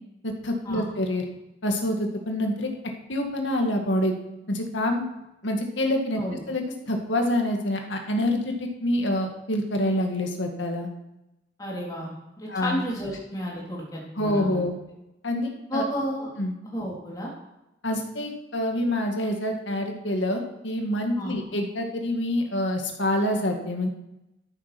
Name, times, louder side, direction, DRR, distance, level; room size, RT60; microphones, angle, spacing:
voice 1, 0.2-1.2 1.6-2.7 3.1-4.1 4.5-5.0 5.4-10.9 12.5-12.8 14.2-14.7 15.2-15.8 16.4-16.5 17.8-23.9, left 1 dB, 80° left, 3 dB, 2.0 m, -26 dB
voice 2, 11.6-14.6 15.7-16.3 16.6-17.3 21.2-21.3, equal, 20° left, -4 dB, 3.5 m, -32 dB
12.5 x 8.7 x 6.0 m, 0.94 s
head